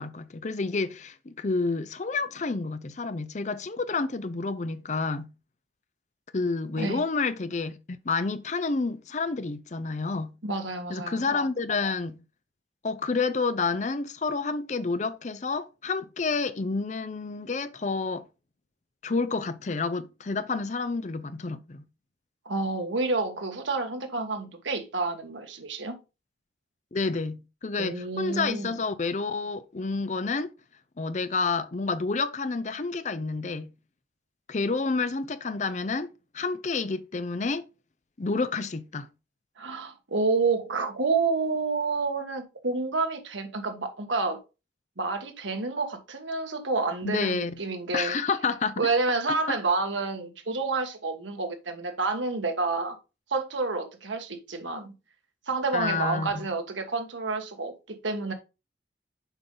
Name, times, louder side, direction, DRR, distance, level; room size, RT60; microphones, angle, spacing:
voice 1, 0.0-5.3 6.3-10.4 10.9-12.2 12.8-18.3 19.0-21.8 26.9-30.5 31.0-33.7 34.5-37.7 38.2-39.1 47.0-47.6 47.9-48.9 49.3-49.6 55.7-56.5, left 4 dB, 40° left, 0.5 m, -29 dB
voice 2, 10.4-11.2 22.4-26.0 27.8-28.8 39.6-44.4 45.0-48.1 48.8-53.0 53.3-54.9 55.5-58.3, right 3 dB, 90° right, 1.4 m, -29 dB
7.1 x 5.3 x 3.8 m
head